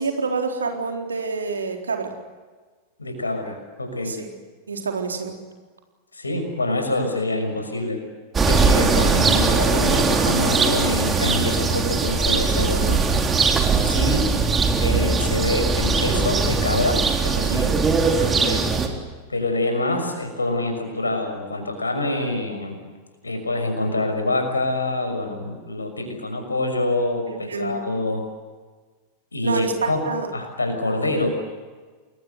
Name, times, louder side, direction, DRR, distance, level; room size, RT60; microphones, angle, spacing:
voice 1, 0.0-2.1 4.1-4.3 4.7-5.3 17.5-17.7 27.3-27.8 29.4-30.3, right 4 dB, 75° right, 3 dB, 4.0 m, -27 dB
voice 2, 3.0-4.1 6.1-8.0 8.4-13.0 13.8-14.3 14.8-17.7 18.0-18.7 19.3-22.8 23.2-28.2 29.3-31.3, left 2 dB, 80° left, 6 dB, 6.1 m, -26 dB
sound 1, 8.3-18.9, right 4 dB, 20° right, 3.9 m, -20 dB
28.5 x 22.0 x 8.1 m, 1.4 s
figure-of-eight pair, 90°, 0 cm